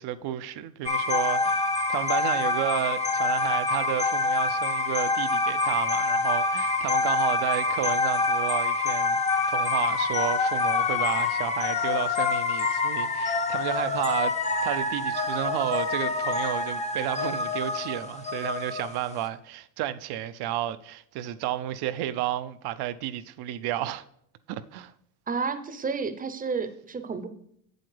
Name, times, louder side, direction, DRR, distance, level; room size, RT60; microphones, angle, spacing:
voice 1, 0.0-9.2 9.5-24.0 24.5-24.9, right 12 dB, 65° right, 0.6 m, -32 dB
sound 1, 0.8-19.2, left 3 dB, 15° left, 0.6 m, -26 dB
voice 2, 25.3-27.3, right 5 dB, 20° right, 0.7 m, -31 dB
8.0 x 7.7 x 3.3 m
cardioid pair, 105°, 43 cm